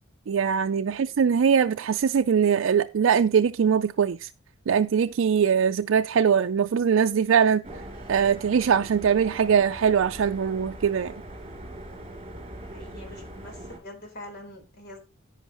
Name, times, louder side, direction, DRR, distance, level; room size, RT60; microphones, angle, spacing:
voice 1, 0.3-4.3 4.7-7.6 8.1-11.1, right 7 dB, 70° right, 0.4 m, -22 dB
voice 2, 0.9-1.3 12.6-15.0, left 1 dB, 55° left, 4.1 m, -45 dB
sound 1, 7.6-13.8, right 1 dB, 30° right, 2.8 m, -41 dB
11.0 x 9.7 x 3.0 m
head